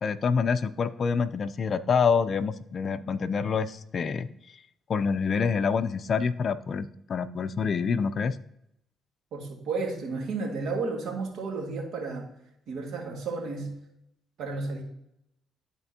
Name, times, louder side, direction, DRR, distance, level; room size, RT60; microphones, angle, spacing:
voice 1, 0.0-4.3 4.9-8.4, left 5 dB, 50° left, 14 dB, 0.4 m, -26 dB
voice 2, 9.3-12.3 12.7-13.7 14.4-14.8, right 3 dB, 80° right, 1 dB, 1.9 m, -32 dB
12.5 x 4.3 x 2.8 m, 0.78 s
cardioid pair, 90°, 0 cm